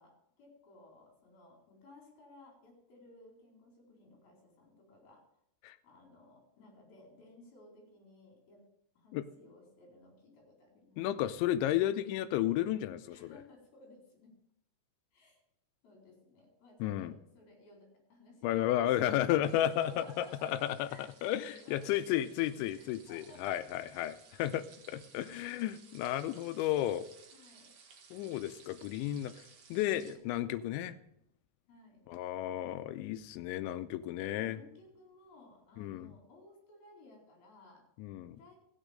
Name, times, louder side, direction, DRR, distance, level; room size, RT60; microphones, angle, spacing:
voice 1, 0.0-5.2 5.8-8.6 9.0-11.0 13.1-14.3 15.1-15.4 15.8-22.2 22.7-24.0 27.3-27.7 30.1-30.3 31.7-32.1 34.1-37.8 38.3-38.6, left 2 dB, 55° left, -1 dB, 6.1 m, -58 dB
voice 2, 11.0-13.4 16.8-17.1 18.4-20.9 21.2-24.1 24.4-27.1 28.1-29.4 29.7-31.0 32.1-34.6 35.8-36.1 38.0-38.4, left 12 dB, 90° left, 12 dB, 3.0 m, -33 dB
sound 1, 19.4-30.2, right 5 dB, 75° right, 1.4 m, -59 dB
14.0 x 9.2 x 5.1 m, 0.75 s
omnidirectional pair, 5.3 m